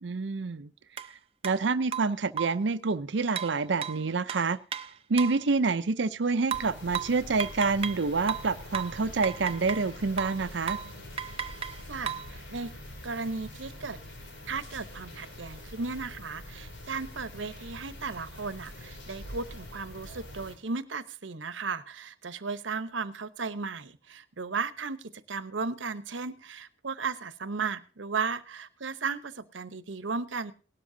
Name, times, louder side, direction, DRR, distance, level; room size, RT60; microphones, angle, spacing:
voice 1, 0.0-0.7 1.0-1.2 1.4-4.6 5.1-10.8, right 4 dB, 70° right, 11 dB, 0.6 m, -27 dB
sound 1, 1.0-1.1 1.4-1.6 1.9-2.7 3.4-5.4 6.5-8.0 8.3-9.9 10.2-10.4 10.7-10.9 11.2-12.3, right 8 dB, 30° right, 0.6 m, -35 dB
sound 2, 6.5-20.6, left 1 dB, 80° left, 2.9 m, -45 dB
voice 2, 11.9-12.7 13.0-14.0 14.5-30.5, right 4 dB, 90° right, 14 dB, 1.0 m, -35 dB
18.0 x 12.5 x 2.7 m, 0.35 s
head